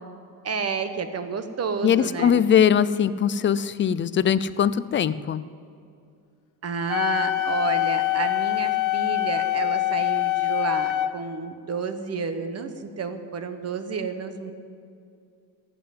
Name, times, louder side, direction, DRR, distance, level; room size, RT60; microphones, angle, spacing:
voice 1, 0.4-2.4 6.6-14.5, right 5 dB, 40° right, 9 dB, 1.0 m, -30 dB
voice 2, 1.8-5.4, left 8 dB, 30° left, 16 dB, 0.4 m, -21 dB
Wind instrument woodwind instrument, 6.9-11.1, left 15 dB, 50° left, 0.8 m, -24 dB
16.5 x 7.9 x 7.7 m, 2.4 s
cardioid pair, 155°, 39 cm